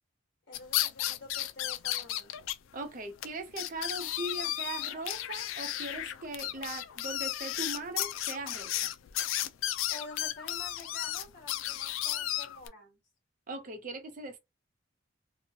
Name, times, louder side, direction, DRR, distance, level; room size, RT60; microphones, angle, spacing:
sound 1, 0.5-2.5 2.8-2.9 3.2-3.3 3.6-12.7, left 13 dB, 90° left, 0.4 m, -34 dB
voice 1, 0.5-2.3 9.9-13.0, left 2 dB, 60° left, 1.2 m, -48 dB
voice 2, 2.7-8.9 13.5-14.4, right 2 dB, 45° right, 0.6 m, -40 dB
3.0 x 2.2 x 2.8 m
head